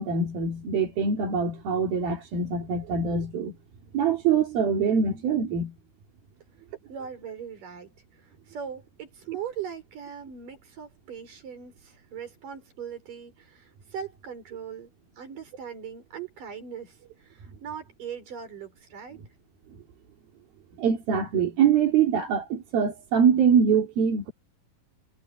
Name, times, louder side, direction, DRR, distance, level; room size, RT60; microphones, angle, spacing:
voice 1, 0.0-3.5 3.9-5.7 20.8-24.3, right 6 dB, 80° right, 4.8 m, -24 dB
voice 2, 6.9-19.2, right 8 dB, 60° right, 6.8 m, -40 dB
omnidirectional pair, 4.2 m